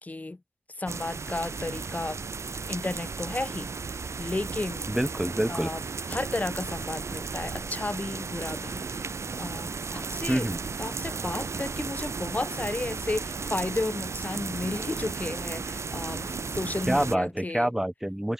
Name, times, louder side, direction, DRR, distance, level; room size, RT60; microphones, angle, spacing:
voice 1, 0.0-0.4 0.8-2.2 2.7-3.7 4.2-4.9 5.5-5.8 6.1-9.1 9.4-10.5 10.8-17.7, left 2 dB, 30° left, 1.9 m, -33 dB
sound 1, 0.9-17.2, right 4 dB, 55° right, 0.9 m, -35 dB
voice 2, 4.9-5.7 10.3-10.6 16.9-18.3, right 1 dB, 5° right, 0.4 m, -27 dB
wide cardioid pair, 95°, 6 cm